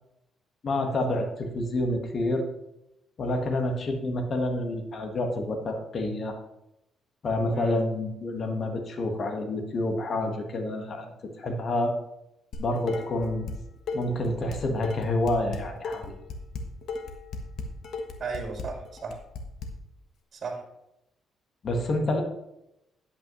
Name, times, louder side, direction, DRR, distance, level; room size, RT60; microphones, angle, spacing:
voice 1, 0.6-2.4 3.2-6.4 7.2-11.1 11.4-11.9 12.6-13.5 13.9-16.2 21.6-22.2, left 1 dB, 50° left, 4 dB, 1.5 m, -28 dB
voice 2, 7.4-7.8 18.2-19.2 20.3-20.6, right 4 dB, 50° right, 1 dB, 2.3 m, -35 dB
Dishes pots and pans, 12.5-13.6 13.9-19.7, left 3 dB, 70° left, 1.3 m, -35 dB
10.5 x 8.6 x 3.1 m, 0.86 s
cardioid pair, 90°, 0 cm